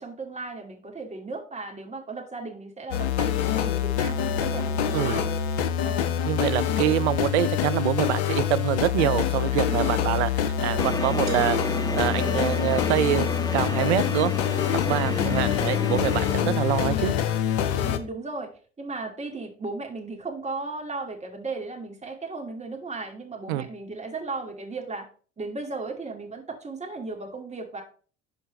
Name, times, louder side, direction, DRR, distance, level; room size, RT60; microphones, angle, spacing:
voice 1, 0.0-5.3 5.8-6.1 9.5-10.3 14.9-15.7 16.4-16.7 17.8-18.5 18.8-25.1 25.4-27.8, right 3 dB, 20° right, 2.4 m, -36 dB
sound 1, 2.9-18.0, left 9 dB, 70° left, 0.9 m, -26 dB
voice 2, 6.2-10.3 10.6-17.1 23.5-23.7, right 15 dB, 75° right, 0.5 m, -26 dB
sound 2, 10.8-16.4, left 4 dB, 10° left, 0.7 m, -31 dB
sound 3, 11.3-13.1, right 11 dB, 55° right, 1.7 m, -41 dB
12.0 x 4.5 x 3.3 m
hypercardioid pair, 65°, 34 cm